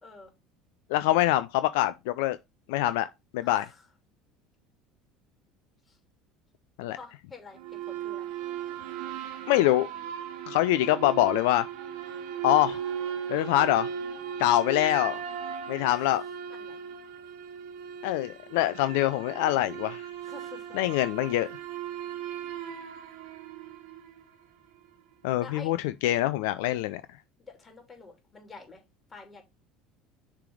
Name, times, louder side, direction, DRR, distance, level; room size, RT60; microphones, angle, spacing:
voice 1, 0.0-0.3 3.4-3.8 5.9-6.0 6.9-8.3 15.8-16.0 16.5-17.1 20.2-20.8 25.3-25.8 27.4-28.8 29.1-29.4, left 3 dB, 25° left, 2.9 m, -48 dB
voice 2, 0.9-2.4 2.7-3.1 3.3-3.7 6.8-7.0 9.5-9.9 10.5-11.6 12.4-12.8 13.3-13.9 14.4-15.2 15.7-16.2 18.0-20.0 20.7-21.5 25.2-25.8 26.0-27.0, left 14 dB, 70° left, 0.3 m, -24 dB
sound 1, 7.6-24.2, right 8 dB, 70° right, 1.2 m, -37 dB
6.7 x 3.3 x 4.7 m
hypercardioid pair, 75°, 0 cm